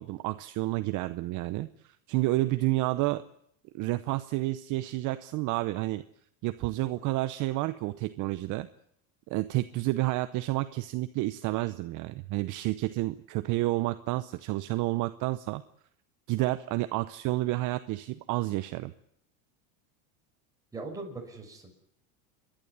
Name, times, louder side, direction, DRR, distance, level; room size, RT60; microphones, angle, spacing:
voice 1, 0.0-3.2 3.8-6.0 6.4-8.7 9.3-15.6 16.3-18.9, right 18 dB, 45° right, 12 dB, 0.8 m, -30 dB
voice 2, 20.7-21.7, right 3 dB, 10° right, -1 dB, 5.9 m, -40 dB
30.0 x 11.5 x 9.6 m, 0.70 s
supercardioid pair, 140°, 43 cm